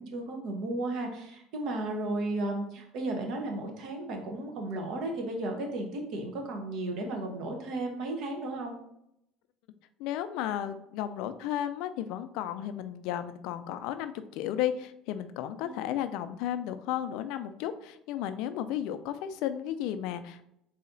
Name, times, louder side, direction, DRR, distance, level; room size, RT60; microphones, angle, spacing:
voice 1, 0.0-8.8 15.6-15.7, right 2 dB, 65° right, 3 dB, 1.0 m, -34 dB
voice 2, 10.0-20.4, left 11 dB, 70° left, 10 dB, 0.4 m, -33 dB
4.0 x 2.8 x 3.8 m, 0.77 s
supercardioid pair, 90°, 0 cm